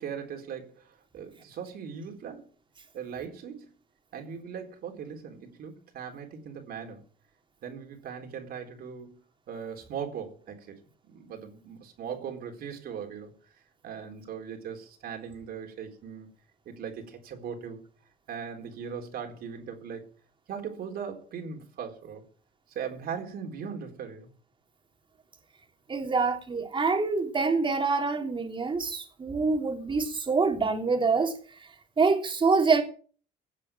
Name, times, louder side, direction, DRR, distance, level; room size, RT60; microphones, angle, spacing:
voice 1, 0.0-2.5 2.9-3.7 4.1-7.0 7.6-9.2 9.5-13.4 13.8-16.3 16.6-17.8 18.3-20.0 20.5-22.2 22.7-24.3, right 7 dB, 65° right, 4.0 m, -39 dB
voice 2, 25.9-31.3 32.0-32.8, right 4 dB, 30° right, 3.2 m, -25 dB
17.0 x 7.7 x 7.5 m
cardioid pair, 110°, 17 cm